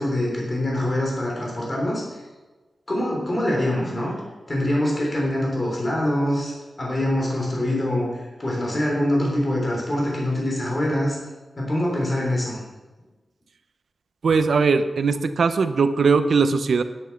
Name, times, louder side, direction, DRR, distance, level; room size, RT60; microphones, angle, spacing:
voice 1, 0.0-2.2 2.9-4.2 4.5-11.2 11.6-12.6, left 1 dB, 30° left, -2 dB, 3.5 m, -24 dB
voice 2, 14.2-16.8, right 4 dB, 75° right, 10 dB, 0.7 m, -20 dB
10.5 x 9.3 x 5.9 m, 1.2 s
wide cardioid pair, 130°, 0 cm